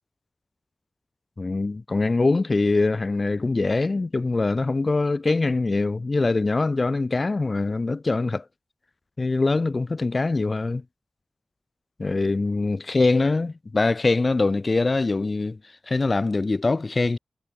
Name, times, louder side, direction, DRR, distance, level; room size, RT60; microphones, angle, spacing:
voice 1, 1.4-8.5 9.2-10.8 12.0-17.2, left 3 dB, 40° left, 0.4 m, -23 dB
wide cardioid pair, 110°, 0 cm